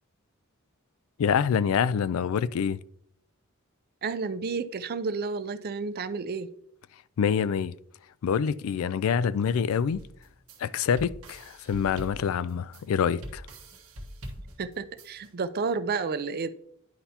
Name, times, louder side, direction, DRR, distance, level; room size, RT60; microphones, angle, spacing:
voice 1, 1.2-2.8 7.2-7.7 8.2-10.0 10.6-13.4, left 7 dB, 70° left, 0.3 m, -26 dB
voice 2, 4.0-6.5 14.6-16.5, right 4 dB, 45° right, 0.5 m, -31 dB
sound 1, 9.9-15.3, equal, 85° right, 1.3 m, -43 dB
10.0 x 5.5 x 2.8 m
head